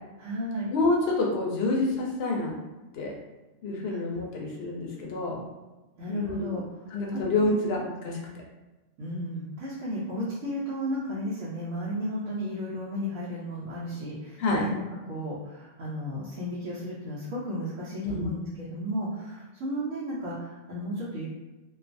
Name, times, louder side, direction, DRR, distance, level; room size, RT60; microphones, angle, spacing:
voice 1, 0.2-0.7 3.9-4.0 6.0-6.6 6.9-7.0 7.5-7.7 9.0-21.3, equal, 90° right, -9 dB, 1.1 m, -34 dB
voice 2, 0.7-2.5 2.9-3.1 3.6-5.3 6.1-6.6 6.9-8.2 14.4-14.6 18.0-18.3, left 2 dB, 65° left, -2 dB, 0.7 m, -27 dB
2.4 x 2.3 x 2.5 m, 1.1 s
omnidirectional pair, 1.3 m